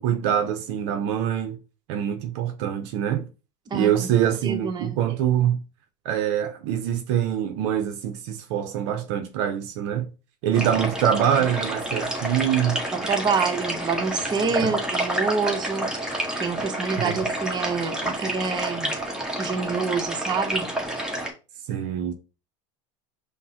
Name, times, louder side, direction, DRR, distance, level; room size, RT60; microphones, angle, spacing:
voice 1, 0.0-1.6 1.9-3.3 3.7-5.6 6.0-10.1 10.4-12.8 14.6-14.7 17.0-17.2 21.7-22.1, right 10 dB, 70° right, 0.6 m, -24 dB
voice 2, 3.7-4.1 4.4-4.9 10.7-10.8 11.4-11.5 12.9-18.9 19.4-20.7, right 5 dB, 30° right, 0.8 m, -27 dB
sound 1, 10.5-21.3, right 1 dB, 5° right, 1.2 m, -29 dB
5.3 x 2.1 x 2.8 m
hypercardioid pair, 90°, 15 cm